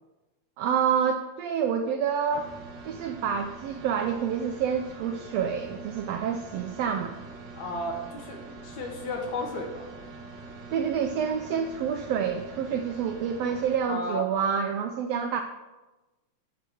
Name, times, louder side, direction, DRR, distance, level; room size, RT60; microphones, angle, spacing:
voice 1, 0.6-2.5 2.9-7.2 10.7-15.4, right 7 dB, 80° right, 6 dB, 1.4 m, -28 dB
sound 1, 2.3-13.8, right 3 dB, 50° right, 1.6 m, -44 dB
voice 2, 7.5-9.9 13.9-14.2, left 2 dB, 70° left, 1 dB, 2.7 m, -34 dB
10.0 x 5.0 x 6.8 m, 1.1 s
omnidirectional pair, 3.4 m